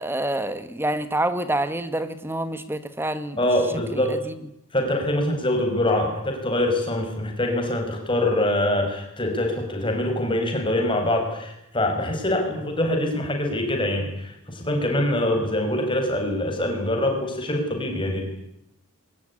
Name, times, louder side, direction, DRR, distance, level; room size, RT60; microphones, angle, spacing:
voice 1, 0.0-3.4 3.9-4.3 12.5-12.7, right 1 dB, 10° right, 12 dB, 1.2 m, -27 dB
voice 2, 3.4-4.1 4.7-18.2, left 1 dB, 20° left, 3 dB, 5.6 m, -24 dB
21.5 x 20.0 x 9.9 m, 0.82 s
head